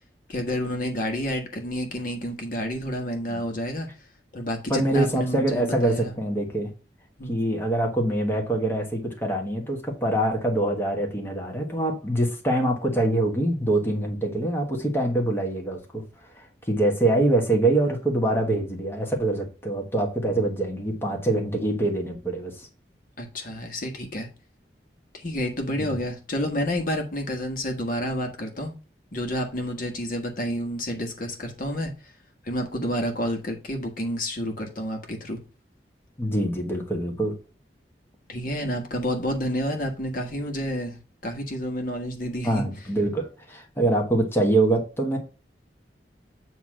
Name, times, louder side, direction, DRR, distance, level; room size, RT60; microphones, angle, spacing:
voice 1, 0.3-3.9 4.3-6.1 7.2-7.4 23.2-24.3 25.1-28.7 29.1-31.9 32.4-35.4 38.3-42.6, equal, 50° left, 1.5 m, -29 dB
voice 2, 4.7-6.7 7.3-16.0 16.3-22.7 25.8-25.9 36.2-37.3 42.4-45.2, right 1 dB, 15° left, 1.3 m, -24 dB
7.9 x 3.0 x 6.2 m
head